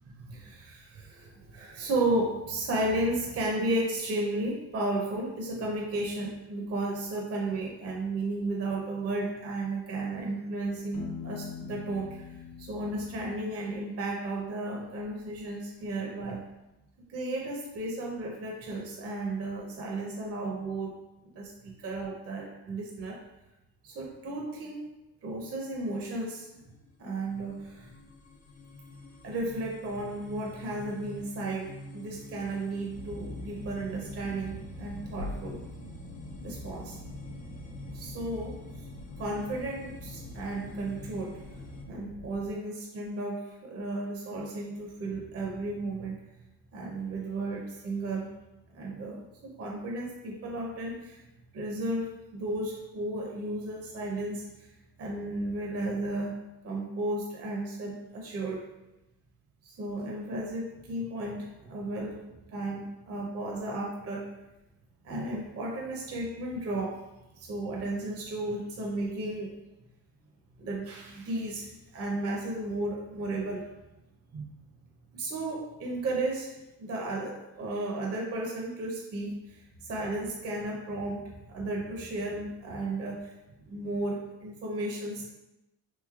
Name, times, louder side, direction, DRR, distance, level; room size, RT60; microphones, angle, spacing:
voice 1, 0.3-12.3 12.6-16.4 17.1-23.2 23.8-24.8 25.2-26.5 27.0-27.9 29.2-35.6 36.4-37.0 37.9-38.6 39.2-41.4 41.9-46.2 46.7-48.3 48.7-51.2 51.5-54.4 55.0-56.3 56.6-58.6 59.8-62.2 62.5-64.3 65.0-67.0 67.3-69.5 70.6-73.6 74.3-74.5 75.1-76.5 76.8-83.3 83.7-85.3, right 2 dB, 35° right, -2 dB, 0.6 m, -34 dB
Piano, 10.9-14.6, left 7 dB, 55° left, 1.0 m, -44 dB
sound 1, 26.7-41.8, left 3 dB, 20° left, 0.3 m, -48 dB
sound 2, 32.9-42.5, left 1 dB, 85° left, 0.8 m, -43 dB
3.2 x 2.8 x 2.3 m, 0.97 s
supercardioid pair, 85°, 41 cm